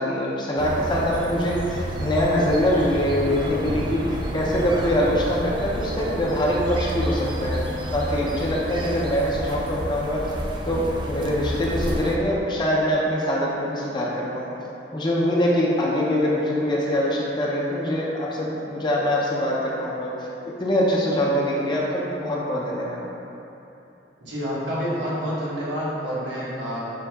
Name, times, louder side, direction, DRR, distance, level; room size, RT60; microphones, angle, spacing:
voice 1, 0.0-10.3 10.7-14.5 14.9-20.1 20.6-23.0, equal, 25° left, -4 dB, 0.6 m, -23 dB
sound 1, 0.6-12.2, right 1 dB, 25° right, 0.3 m, -30 dB
voice 2, 24.2-26.9, equal, 90° right, -8 dB, 1.3 m, -28 dB
5.3 x 2.8 x 3.4 m, 2.9 s
head